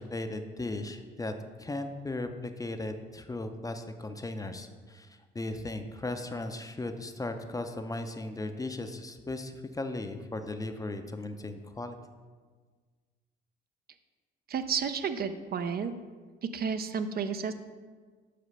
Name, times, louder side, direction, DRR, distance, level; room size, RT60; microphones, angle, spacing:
voice 1, 0.0-1.3 1.6-5.1 5.3-12.0, left 2 dB, 15° left, 7 dB, 0.5 m, -37 dB
voice 2, 14.5-15.9 16.4-17.5, right 6 dB, 50° right, 9 dB, 0.4 m, -31 dB
5.6 x 5.0 x 5.4 m, 1.5 s
cardioid pair, 90°, 20 cm